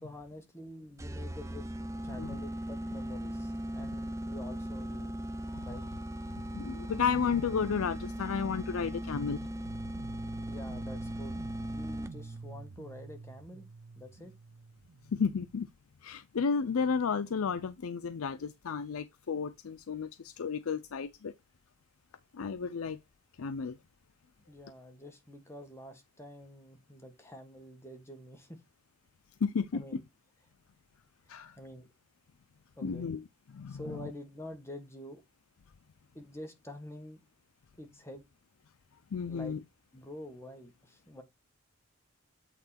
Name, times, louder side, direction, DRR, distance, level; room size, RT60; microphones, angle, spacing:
voice 1, 0.0-1.6 2.0-5.2 5.6-5.8 10.5-11.4 11.7-13.7 13.9-14.3 24.5-28.6 29.7-30.0 31.3-31.9 32.8-33.1 33.7-35.2 36.1-37.2 37.7-38.2 39.3-39.6 39.9-41.2, left 1 dB, 10° left, 1.5 m, -47 dB
sound 1, 1.0-12.4, equal, 15° right, 0.4 m, -39 dB
voice 2, 2.1-2.4 6.4-9.5 15.1-15.7 16.0-21.3 22.3-23.0 23.4-23.8 29.4-30.0 31.3-31.6 32.8-33.2 33.5-34.0 39.1-39.6, left 6 dB, 90° left, 0.5 m, -32 dB
sound 2, 9.7-15.6, right 4 dB, 65° right, 0.6 m, -47 dB
8.4 x 3.8 x 4.1 m
head